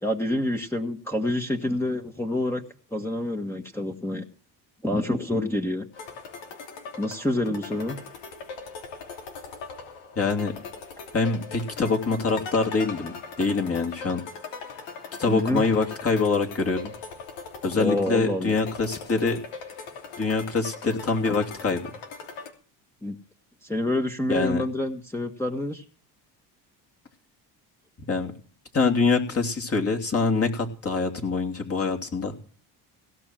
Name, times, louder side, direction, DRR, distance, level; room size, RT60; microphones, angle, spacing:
voice 1, 0.0-2.6 2.9-4.2 4.8-5.8 7.0-8.0 15.3-15.6 17.7-18.6 23.0-23.1 23.6-25.8, left 1 dB, 5° left, -1 dB, 1.6 m, -27 dB
sound 1, 5.9-22.5, left 5 dB, 75° left, 3.0 m, -40 dB
voice 2, 10.2-10.5 11.1-14.2 15.2-16.9 17.6-19.4 20.2-21.9 24.3-24.6 28.1-28.3 28.7-32.3, left 4 dB, 30° left, 3 dB, 3.0 m, -25 dB
17.0 x 6.2 x 7.6 m, 0.43 s
supercardioid pair, 85°, 44 cm